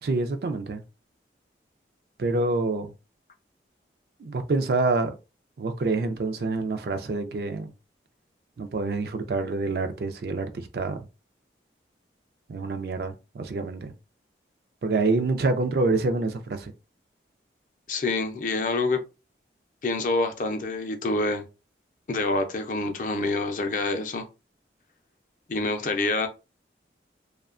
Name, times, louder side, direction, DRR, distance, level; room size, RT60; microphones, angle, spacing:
voice 1, 0.0-0.8 2.2-2.9 4.2-5.1 5.6-7.7 8.6-11.1 12.5-13.9 14.8-16.7, right 3 dB, 60° right, 0.4 m, -27 dB
voice 2, 17.9-19.0 19.8-21.4 22.1-24.3 25.5-26.3, left 2 dB, 45° left, 0.4 m, -26 dB
2.7 x 2.1 x 2.4 m
head